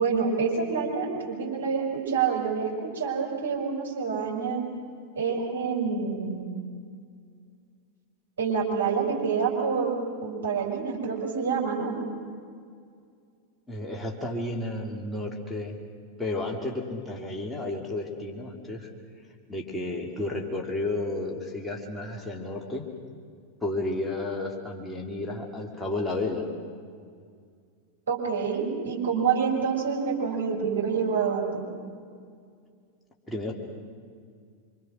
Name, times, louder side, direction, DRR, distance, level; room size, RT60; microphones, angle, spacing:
voice 1, 0.0-4.6 5.1-6.5 8.4-12.0 28.1-31.6, right 5 dB, 65° right, -2 dB, 6.1 m, -27 dB
voice 2, 13.7-15.8 16.2-18.9 19.5-22.9 23.6-26.4 33.3-33.5, left 2 dB, 10° left, -1 dB, 2.7 m, -32 dB
26.0 x 25.5 x 6.4 m, 2.2 s
figure-of-eight pair, 90°, 0 cm